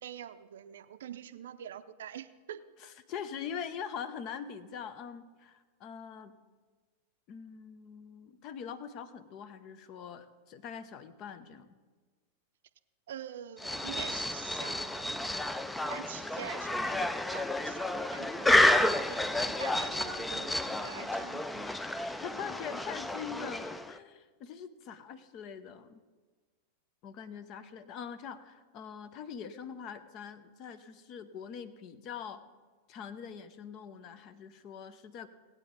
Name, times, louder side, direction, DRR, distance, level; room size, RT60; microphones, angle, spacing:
voice 1, 0.0-2.6 13.1-21.7 22.0-22.1, right 9 dB, 60° right, 11 dB, 0.6 m, -45 dB
voice 2, 2.8-6.3 7.3-11.8 22.2-26.0 27.0-32.4 32.9-35.3, left 7 dB, 40° left, 13 dB, 0.8 m, -43 dB
sound 1, 13.6-24.0, left 1 dB, 5° left, 0.5 m, -30 dB
18.0 x 8.9 x 3.9 m, 1.4 s
figure-of-eight pair, 90°, 0 cm